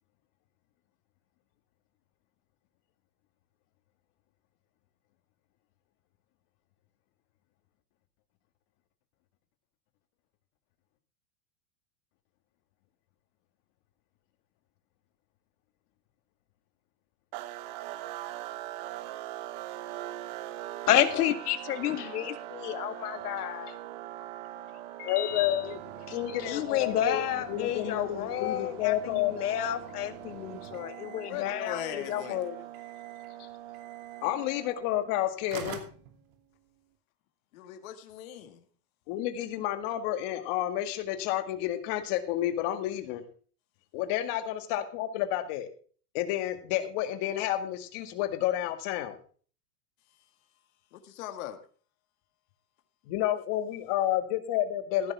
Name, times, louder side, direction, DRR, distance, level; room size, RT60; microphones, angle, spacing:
sound 1, 17.3-35.2, right 14 dB, 35° right, 0.8 m, -42 dB
voice 1, 20.9-23.8 24.6-24.7 25.0-25.6 26.4-32.6, left 11 dB, 85° left, 9 dB, 2.0 m, -30 dB
voice 2, 25.0-25.8 26.1-27.2 27.5-29.4 34.2-35.8 39.1-43.2 43.9-45.7 46.1-49.2 53.1-55.1, left 13 dB, 45° left, 8 dB, 2.0 m, -30 dB
sound 2, 25.3-31.4 31.7-32.4 32.7-33.3 33.7-34.3 35.1-35.2 35.5-36.8, right 7 dB, 65° right, 2.8 m, -48 dB
voice 3, 31.3-32.4 37.5-38.6 50.9-51.6, left 12 dB, 60° left, 6 dB, 2.2 m, -39 dB
15.5 x 10.5 x 3.6 m, 0.42 s
supercardioid pair, 160°, 45 cm